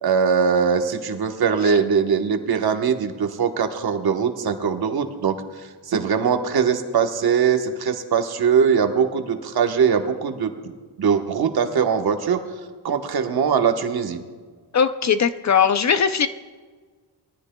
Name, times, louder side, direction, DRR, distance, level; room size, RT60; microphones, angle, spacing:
voice 1, 0.0-5.3 5.9-10.5 11.0-12.4 12.8-14.2, right 6 dB, 60° right, 5 dB, 1.2 m, -21 dB
voice 2, 14.7-16.3, left 7 dB, 40° left, 11 dB, 0.5 m, -19 dB
22.0 x 14.0 x 2.2 m, 1.5 s
wide cardioid pair, 115°, 43 cm